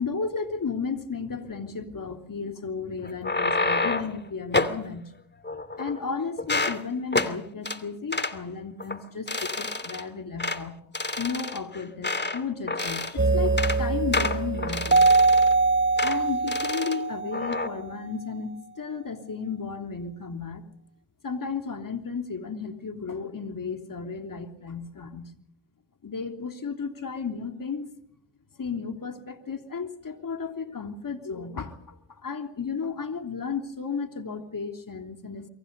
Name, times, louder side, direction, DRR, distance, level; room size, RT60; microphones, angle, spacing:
voice 1, 0.0-5.1 5.8-10.8 11.2-15.1 16.0-20.6 21.2-25.3 26.0-27.9 28.5-35.5, left 5 dB, 45° left, 5 dB, 3.3 m, -34 dB
sound 1, 3.0-4.2 4.5-4.8 5.4-6.1 6.4-6.8 7.1-7.3 7.7-7.8 8.1-8.4 8.8-9.0 9.3-10.0 10.4-10.6 10.9-12.4 12.7-13.2 13.5-13.8 14.1-15.5 16.0-16.2 16.5-17.0 17.3-17.7, left 3 dB, 25° left, 2.7 m, -28 dB
sound 2, 13.2-17.8, right 3 dB, 25° right, 1.4 m, -23 dB
29.0 x 24.0 x 5.4 m, 0.66 s
supercardioid pair, 50°, 44 cm